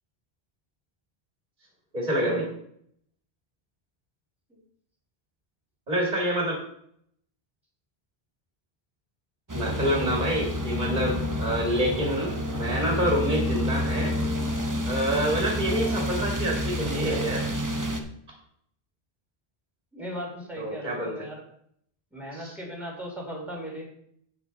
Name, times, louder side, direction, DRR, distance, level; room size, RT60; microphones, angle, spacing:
voice 1, 1.9-2.5 5.9-6.5 9.5-14.2 14.8-17.5 20.6-21.1 22.3-22.5, equal, 45° right, -2 dB, 2.4 m, -27 dB
sound 1, 9.5-18.0, equal, 20° right, 0.8 m, -29 dB
voice 2, 19.9-21.4 22.1-23.8, equal, ahead, -3 dB, 3.1 m, -37 dB
8.2 x 8.0 x 4.1 m, 0.68 s
omnidirectional pair, 1.1 m